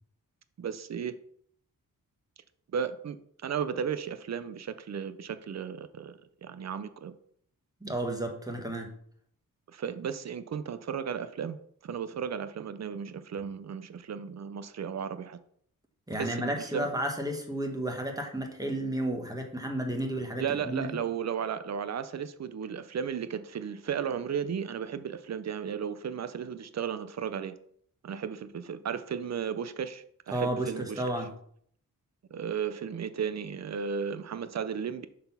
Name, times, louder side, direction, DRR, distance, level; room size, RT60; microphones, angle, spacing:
voice 1, 0.6-1.1 2.7-3.2 3.4-7.1 9.7-15.4 16.1-16.9 20.4-27.5 28.0-31.0 32.3-35.1, right 7 dB, 50° right, 12 dB, 0.6 m, -34 dB
voice 2, 7.8-8.9 16.1-21.0 30.3-31.3, right 1 dB, 10° right, 3 dB, 1.1 m, -32 dB
6.5 x 4.1 x 5.5 m, 0.64 s
wide cardioid pair, 145°, 35 cm